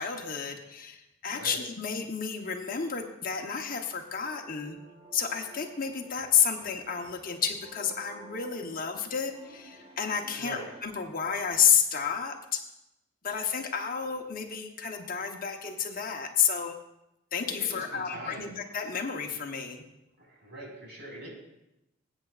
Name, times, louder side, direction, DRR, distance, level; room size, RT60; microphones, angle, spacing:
voice 1, 0.0-4.8 5.1-12.6 13.2-16.7 17.3-19.8, left 7 dB, 45° left, 4 dB, 0.9 m, -30 dB
sound 1, 4.2-11.0, right 2 dB, 25° right, 3.9 m, -53 dB
voice 2, 10.3-10.7 17.4-18.5 20.2-21.3, right 1 dB, 55° right, -2 dB, 4.7 m, -43 dB
20.0 x 8.9 x 2.4 m, 0.89 s
head